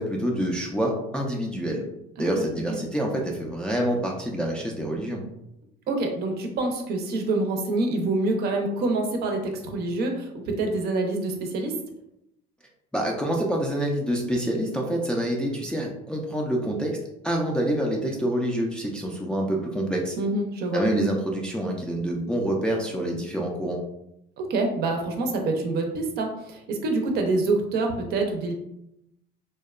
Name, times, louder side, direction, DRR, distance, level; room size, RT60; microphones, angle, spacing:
voice 1, 0.0-1.8 2.2-5.2 12.9-17.0 17.2-20.2 20.7-23.8, right 1 dB, 5° left, -2 dB, 0.3 m, -27 dB
voice 2, 5.9-11.7 20.2-20.8 24.4-28.5, right 2 dB, 60° right, 3 dB, 0.5 m, -26 dB
2.7 x 2.1 x 2.3 m, 0.82 s
cardioid pair, 125°, 19 cm